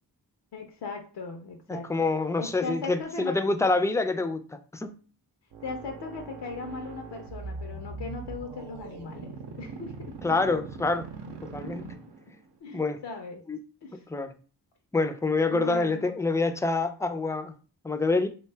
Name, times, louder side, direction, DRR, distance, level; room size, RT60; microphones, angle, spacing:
voice 1, 0.5-2.1 2.4-3.4 5.6-10.1 11.6-11.7 12.6-13.4 13.8-14.0 15.5-16.2, left 4 dB, 75° left, 3 dB, 0.6 m, -38 dB
voice 2, 1.7-4.9 10.2-11.1 11.4-11.9 12.7-13.0 13.5-13.6 13.9-14.3 14.9-17.5 17.8-18.3, left 3 dB, 10° left, 9 dB, 0.3 m, -27 dB
sound 1, 5.5-12.5, right 4 dB, 80° right, 0.7 m, -41 dB
2.6 x 2.2 x 3.2 m, 0.38 s
cardioid pair, 40°, 41 cm